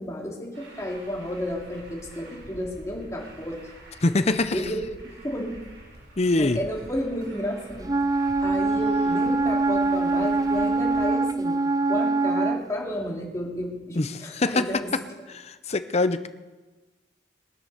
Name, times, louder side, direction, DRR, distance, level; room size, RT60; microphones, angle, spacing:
voice 1, 0.0-3.6 4.5-5.6 6.4-7.9 8.4-14.9, equal, 15° left, -1 dB, 2.5 m, -32 dB
Truck, 0.5-11.1, right 1 dB, 75° right, 5.3 m, -47 dB
voice 2, 4.0-4.6 6.2-6.6 14.0-14.7 15.3-16.3, left 2 dB, 35° left, 11 dB, 0.7 m, -24 dB
Wind instrument woodwind instrument, 7.9-12.7, right 3 dB, 20° right, 0.4 m, -23 dB
21.5 x 7.9 x 6.6 m, 1.2 s
head